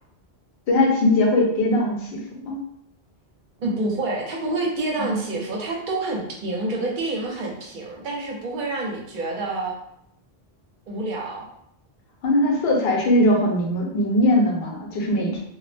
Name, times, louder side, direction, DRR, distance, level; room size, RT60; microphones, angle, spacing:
voice 1, 0.7-2.1 2.4-2.6 5.0-5.3 12.2-15.4, left 1 dB, 70° left, -1 dB, 0.9 m, -20 dB
voice 2, 3.6-9.8 10.9-11.5, right 2 dB, 55° right, -1 dB, 0.7 m, -28 dB
2.2 x 2.0 x 3.1 m, 0.74 s
omnidirectional pair, 1.0 m